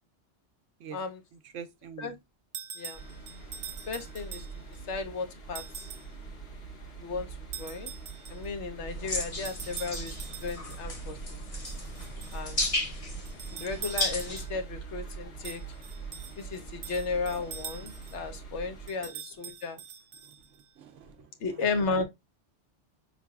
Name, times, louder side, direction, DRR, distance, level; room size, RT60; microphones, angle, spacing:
voice 1, 1.4-2.1 12.7-12.9 19.0-19.2 20.2-20.3 20.8-22.0, right 7 dB, 90° right, 1.1 m, -45 dB
sound 1, 2.5-4.8 5.6-6.1 7.5-8.5 9.4-10.8 11.7-12.5 13.3-14.7 15.4-18.2 18.9-20.6, right 8 dB, 60° right, 0.8 m, -43 dB
sound 2, 2.9-18.9, right 5 dB, 55° left, 1.8 m, -44 dB
voice 2, 3.9-4.4 4.9-5.9 7.0-7.3 7.6-7.9 8.3-10.2 10.4-11.4 12.3-12.6 13.5-15.6 16.4-19.8 21.4-22.0, left 4 dB, 70° left, 1.3 m, -34 dB
sound 3, 8.9-14.4, left 2 dB, 30° left, 1.1 m, -35 dB
5.9 x 3.9 x 2.3 m
omnidirectional pair, 1.2 m